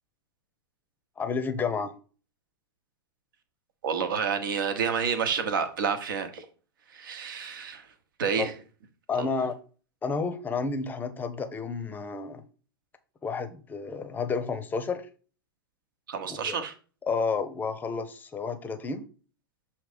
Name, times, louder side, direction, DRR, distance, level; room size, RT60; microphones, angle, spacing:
voice 1, 1.2-1.9 8.4-8.5 9.1-9.5 10.0-12.4 13.2-15.1 16.3-16.6 17.1-19.0, left 5 dB, 15° left, 0.7 m, -31 dB
voice 2, 3.8-6.5 6.9-7.9 8.2-8.5 16.1-16.7, right 6 dB, 55° right, 1.1 m, -29 dB
6.9 x 2.9 x 5.1 m
figure-of-eight pair, 100°, 13 cm